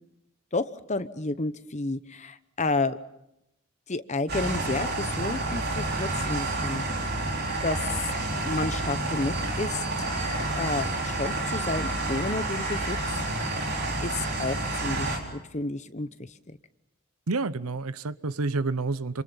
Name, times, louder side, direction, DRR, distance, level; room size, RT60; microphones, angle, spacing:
voice 1, 0.5-3.0 3.9-6.8 7.6-7.8 8.4-9.8 10.6-13.0 14.0-16.6, left 3 dB, 30° left, 0.9 m, -31 dB
sound 1, 4.3-15.2, right 2 dB, 45° right, 4.5 m, -29 dB
voice 2, 17.3-19.2, right 3 dB, 85° right, 0.9 m, -29 dB
27.5 x 27.0 x 5.7 m
head